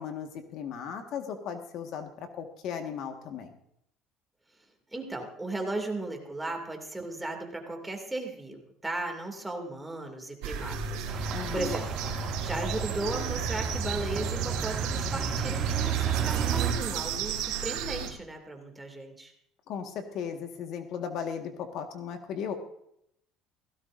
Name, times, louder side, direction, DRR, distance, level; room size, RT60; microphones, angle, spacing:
voice 1, 0.0-3.5 11.3-11.7 19.7-22.5, left 7 dB, 60° left, 5 dB, 1.6 m, -36 dB
voice 2, 4.9-11.9 12.4-19.3, right 2 dB, 10° right, 3 dB, 2.5 m, -36 dB
sound 1, 10.4-18.1, right 6 dB, 85° right, 2.7 m, -34 dB
sound 2, 11.1-16.7, right 7 dB, 35° right, 2.3 m, -32 dB
16.5 x 16.0 x 2.6 m, 0.74 s
cardioid pair, 125°, 0 cm